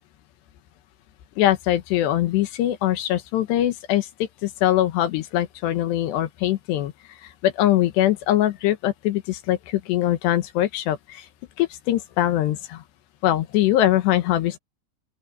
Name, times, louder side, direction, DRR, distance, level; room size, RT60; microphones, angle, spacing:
voice 1, 1.4-11.3 11.6-12.8 13.2-14.6, left 13 dB, 70° left, 3.1 m, -22 dB
open air
omnidirectional pair, 5.5 m